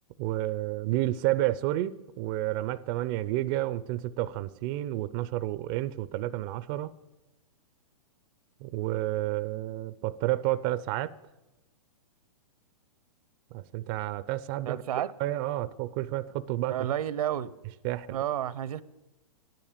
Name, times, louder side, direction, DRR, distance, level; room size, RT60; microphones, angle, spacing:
voice 1, 0.2-6.9 8.6-11.1 13.5-14.8 15.2-16.8 17.8-18.2, right 15 dB, 35° right, 0.5 m, -30 dB
voice 2, 14.7-15.1 16.7-17.5 18.1-18.8, right 11 dB, 70° right, 0.7 m, -30 dB
12.0 x 10.5 x 8.5 m
hypercardioid pair, 140°, 19 cm